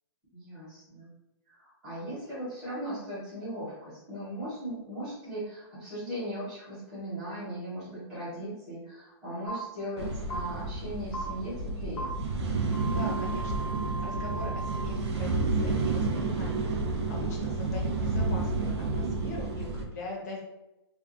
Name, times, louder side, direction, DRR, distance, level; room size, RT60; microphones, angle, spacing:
voice 1, 0.3-1.1 1.5-12.1, equal, 5° right, -15 dB, 0.9 m, -38 dB
sound 1, 9.5-9.6 10.3-10.4 11.1-11.2 12.0-12.1 12.7-14.8, right 2 dB, 80° left, 0.8 m, -37 dB
sound 2, 10.0-19.8, right 3 dB, 85° right, 0.5 m, -30 dB
voice 2, 12.9-20.4, left 2 dB, 40° left, -1 dB, 0.7 m, -41 dB
2.5 x 2.3 x 2.5 m, 0.95 s
hypercardioid pair, 180°, 14 cm